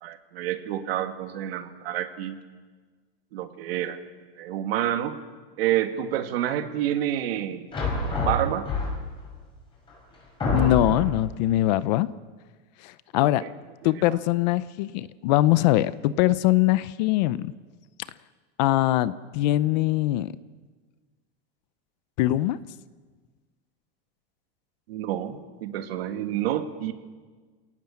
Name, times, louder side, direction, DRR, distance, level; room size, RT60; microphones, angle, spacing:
voice 1, 0.0-2.4 3.3-4.0 4.4-5.2 5.6-7.7 8.2-8.7 13.4-13.5 13.8-14.2 24.9-26.9, right 11 dB, 70° right, 7 dB, 2.0 m, -28 dB
sound 1, 7.7-9.2 9.9-10.0 10.4-11.2, left 3 dB, 15° left, 5.9 m, -26 dB
voice 2, 10.5-12.1 12.8-13.4 13.8-17.5 18.6-20.3 22.2-22.6, left 15 dB, 45° left, 17 dB, 0.6 m, -22 dB
28.5 x 18.5 x 7.1 m, 1.4 s
supercardioid pair, 175°, 31 cm